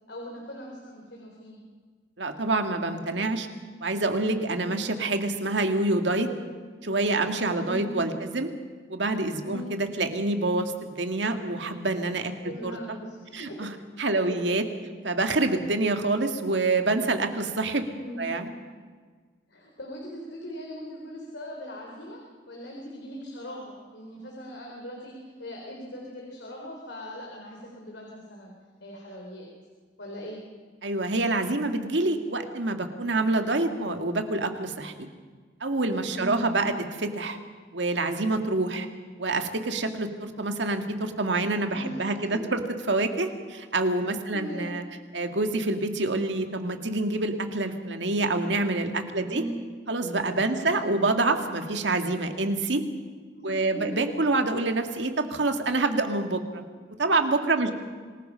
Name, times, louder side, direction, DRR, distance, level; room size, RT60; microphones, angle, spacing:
voice 1, 0.1-1.6 7.5-7.9 9.4-9.7 12.4-13.8 14.3-14.6 17.9-18.3 19.5-22.2 22.5-28.5 28.8-29.5 30.0-30.4 36.0-36.5 41.7-42.1 42.5-42.6 44.3-44.7 49.2-49.5 50.5-50.9 53.3-54.0 57.6-57.7, equal, 80° left, -1 dB, 4.0 m, -40 dB
voice 2, 2.2-3.5 3.8-6.3 6.8-8.5 8.9-12.8 13.3-13.7 14.0-14.6 15.0-17.8 18.2-18.5 30.8-35.1 35.6-37.4 37.7-38.9 39.2-42.6 42.9-44.8 45.1-49.4 49.9-52.8 53.4-56.6 57.0-57.7, right 2 dB, 85° right, 6 dB, 2.0 m, -27 dB
26.5 x 20.0 x 5.7 m, 1.5 s
head